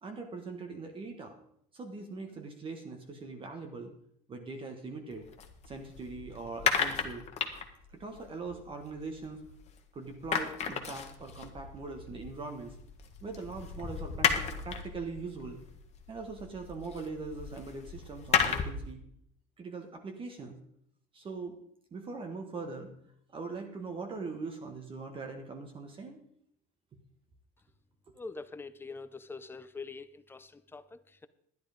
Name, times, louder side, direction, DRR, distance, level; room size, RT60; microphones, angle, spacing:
voice 1, 0.0-1.3 1.7-3.9 4.3-5.2 5.7-7.2 7.9-9.4 9.9-12.7 13.2-15.6 16.1-19.0 19.6-20.6 21.1-21.6 21.9-22.9 23.3-26.2 28.1-28.2, right 4 dB, 30° right, 4 dB, 1.5 m, -41 dB
sound 1, 5.1-9.8 10.0-18.9, left 7 dB, 40° left, 1.5 m, -34 dB
voice 2, 28.2-31.3, left 4 dB, 10° left, 13 dB, 0.7 m, -44 dB
11.0 x 10.0 x 5.1 m, 0.70 s
cardioid pair, 120°, 18 cm